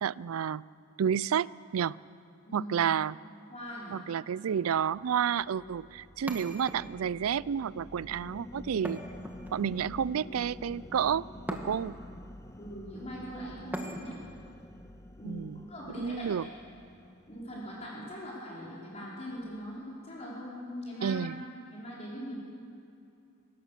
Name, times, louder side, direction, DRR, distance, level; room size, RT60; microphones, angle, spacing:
voice 1, 0.0-0.6 1.0-2.0 2.5-3.2 3.9-9.0 9.5-11.2 11.5-12.0 15.2-15.6 15.9-16.5 21.0-21.4, right 8 dB, 85° right, 21 dB, 0.4 m, -30 dB
voice 2, 3.5-4.0 12.5-14.2 15.2-16.3 17.3-21.2 21.7-22.4, equal, 30° left, -6 dB, 4.9 m, -41 dB
sound 1, 4.7-18.2, left 1 dB, 15° left, 0.7 m, -48 dB
sound 2, 6.3-7.2 8.8-9.8 11.5-12.1 13.7-14.4, equal, 10° right, 1.5 m, -40 dB
24.0 x 18.0 x 6.8 m, 2.6 s
head